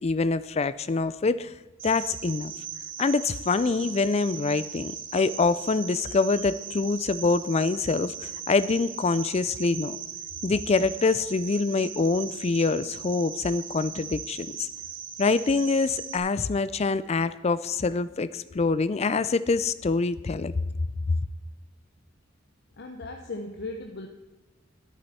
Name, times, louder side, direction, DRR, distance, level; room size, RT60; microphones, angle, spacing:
voice 1, 0.0-1.5 1.8-2.5 3.0-10.0 10.4-14.7 15.2-20.5 21.1-21.2, left 4 dB, 35° left, 15 dB, 0.4 m, -25 dB
Cricket, 1.8-16.2, right 7 dB, 75° right, 1.3 m, -39 dB
voice 2, 22.8-24.1, left 2 dB, 55° left, 4 dB, 0.8 m, -37 dB
12.5 x 11.0 x 4.2 m, 1.2 s
head